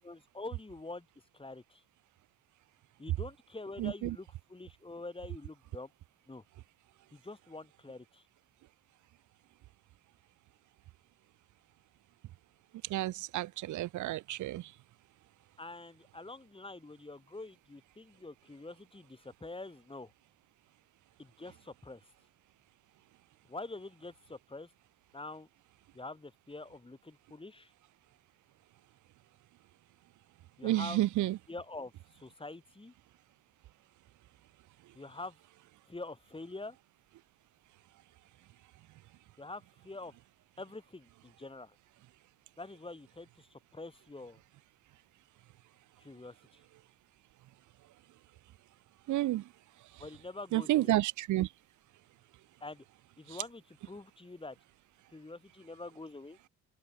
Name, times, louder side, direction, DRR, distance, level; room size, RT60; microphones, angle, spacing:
voice 1, 0.0-1.1 1.3-1.8 3.0-5.9 6.3-6.4 7.1-8.2 15.6-20.1 21.2-22.0 23.5-24.7 25.1-25.5 25.9-27.7 30.6-31.0 31.5-32.9 34.9-35.4 35.9-36.8 39.4-40.1 40.6-41.8 42.6-44.4 46.0-46.6 50.0-50.9 52.6-52.8 53.2-54.6 55.1-56.4, left 2 dB, 15° left, 7.5 m, -46 dB
voice 2, 3.8-4.2 12.9-14.7 30.6-31.4 49.1-49.4 50.5-51.5, right 15 dB, 75° right, 0.8 m, -30 dB
open air
cardioid pair, 90°, 30 cm